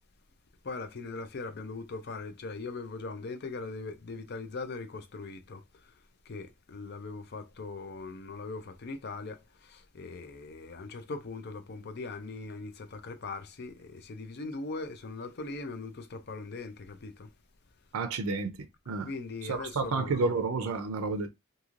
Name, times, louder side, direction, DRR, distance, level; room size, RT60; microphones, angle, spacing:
voice 1, 0.6-5.9 6.3-17.3 19.0-20.4, left 3 dB, 50° left, 0.5 m, -40 dB
voice 2, 17.9-18.5 18.9-19.1 19.5-21.3, right 4 dB, 85° right, 0.5 m, -30 dB
3.0 x 2.6 x 2.4 m
head